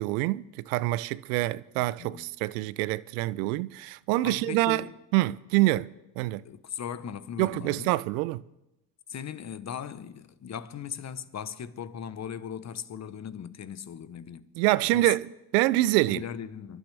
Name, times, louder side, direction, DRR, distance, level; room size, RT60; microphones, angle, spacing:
voice 1, 0.0-4.9 5.1-5.9 6.2-6.4 7.4-8.4 14.6-16.2, right 18 dB, 80° right, 0.6 m, -26 dB
voice 2, 1.8-2.3 4.2-4.9 6.4-7.9 9.1-14.5 14.9-15.1 16.1-16.8, left 8 dB, 35° left, 0.9 m, -38 dB
29.5 x 11.5 x 3.4 m
hypercardioid pair, 70°, 48 cm